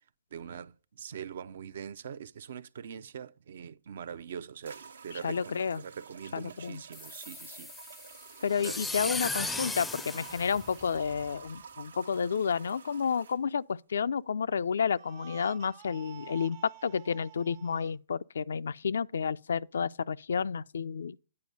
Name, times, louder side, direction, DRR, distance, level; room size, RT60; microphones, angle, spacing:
voice 1, 0.3-7.7 8.6-8.8, right 7 dB, 65° right, 0.5 m, -43 dB
sound 1, 3.8-3.9 4.7-13.4, right 6 dB, 85° right, 1.0 m, -50 dB
voice 2, 5.2-5.8 6.3-6.8 8.4-21.2, left 6 dB, 75° left, 0.3 m, -31 dB
sound 2, 6.9-11.3, left 3 dB, 5° left, 0.4 m, -37 dB
sound 3, 9.2-11.9 14.9-17.9, right 10 dB, 40° right, 1.0 m, -51 dB
9.6 x 4.6 x 5.2 m
hypercardioid pair, 135°, 0 cm